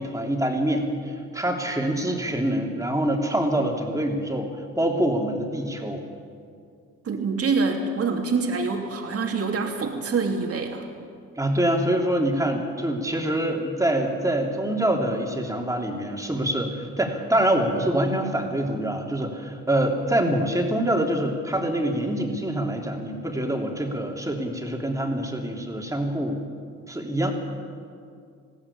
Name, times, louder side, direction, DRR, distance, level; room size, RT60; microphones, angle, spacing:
voice 1, 0.0-4.5 4.8-6.1 11.4-26.4 26.9-27.3, right 1 dB, 10° right, 1 dB, 3.2 m, -25 dB
voice 2, 7.0-10.8, right 4 dB, 50° right, 3 dB, 2.9 m, -25 dB
20.5 x 15.5 x 8.7 m, 2.3 s
cardioid pair, 90°, 30 cm